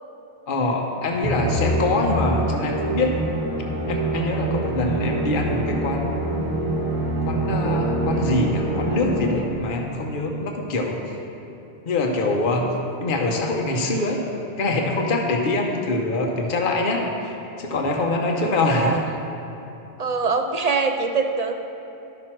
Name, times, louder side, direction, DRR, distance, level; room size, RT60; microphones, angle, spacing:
voice 1, 0.5-3.1 3.9-6.5 7.3-11.2 11.9-12.7 13.0-14.2 14.6-19.0, left 2 dB, 55° left, 1 dB, 1.0 m, -24 dB
Musical instrument, 1.2-9.7, right 1 dB, 30° right, 1.1 m, -25 dB
voice 2, 18.4-19.0 20.0-21.5, right 4 dB, 55° right, 5 dB, 0.4 m, -23 dB
12.0 x 6.1 x 4.4 m, 2.9 s
omnidirectional pair, 1.1 m